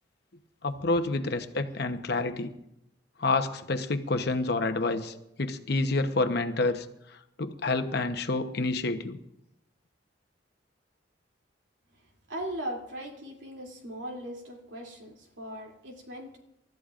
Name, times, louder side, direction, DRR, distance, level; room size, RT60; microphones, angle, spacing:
voice 1, 0.6-2.5 3.2-6.9 7.4-9.2, left 3 dB, 60° left, 7 dB, 1.0 m, -28 dB
voice 2, 12.0-16.4, right 1 dB, 80° right, 0 dB, 2.9 m, -39 dB
28.5 x 13.5 x 2.5 m, 0.82 s
head